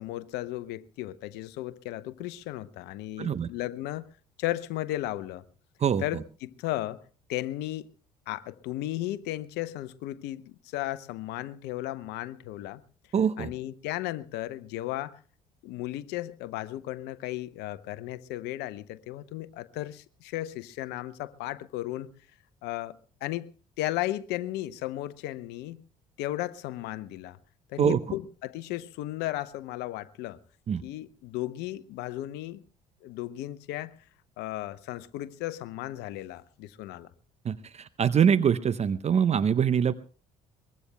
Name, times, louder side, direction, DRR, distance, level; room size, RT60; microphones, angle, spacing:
voice 1, 0.0-4.1 4.4-5.4 6.0-7.0 7.3-7.9 8.3-12.8 13.4-15.2 15.6-22.1 22.6-25.8 26.2-27.4 27.7-30.4 30.8-32.6 33.0-34.0 34.4-37.1, left 15 dB, 65° left, 0.8 m, -35 dB
voice 2, 3.2-3.5 5.8-6.2 13.1-13.5 27.8-28.0 30.7-30.8 37.4-39.9, right 7 dB, 35° right, 0.6 m, -24 dB
23.0 x 20.5 x 2.2 m
hypercardioid pair, 55°, 19 cm